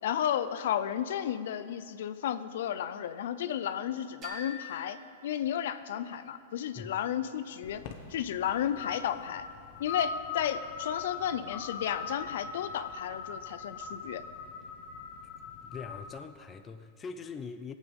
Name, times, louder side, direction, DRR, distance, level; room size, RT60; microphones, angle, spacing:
voice 1, 0.0-7.8 8.1-9.5 9.8-14.2, left 10 dB, 70° left, 0.5 m, -33 dB
sound 1, 4.2-6.1, left 2 dB, 30° right, 2.7 m, -47 dB
sound 2, 7.6-16.1, left 5 dB, 50° left, 1.4 m, -41 dB
voice 2, 15.6-17.8, left 5 dB, 20° left, 0.6 m, -42 dB
18.5 x 8.3 x 5.4 m
supercardioid pair, 145°, 0 cm